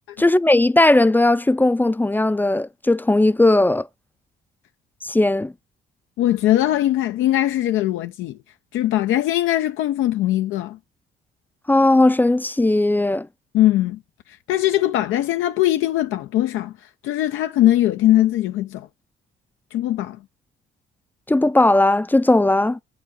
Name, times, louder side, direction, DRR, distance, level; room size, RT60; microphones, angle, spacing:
voice 1, 0.2-3.9 5.0-5.5 11.7-13.3 21.3-22.8, left 2 dB, 10° left, 0.3 m, -17 dB
voice 2, 6.2-8.4 8.7-10.8 13.5-14.0 14.5-16.7 17.0-18.9 19.7-20.2, left 14 dB, 90° left, 0.5 m, -20 dB
7.9 x 5.0 x 3.8 m
cardioid pair, 90°, 20 cm